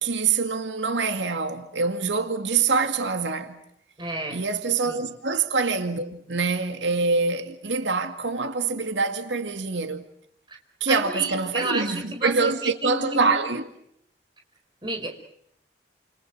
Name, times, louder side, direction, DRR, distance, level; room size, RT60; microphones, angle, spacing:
voice 1, 0.0-3.6 4.3-10.1 10.8-13.7, right 4 dB, 85° right, 2.2 m, -25 dB
voice 2, 4.0-4.4 4.9-5.1 10.5-10.6 10.9-13.6 14.8-15.2, right 2 dB, 25° right, 5.0 m, -31 dB
30.0 x 28.0 x 6.2 m
head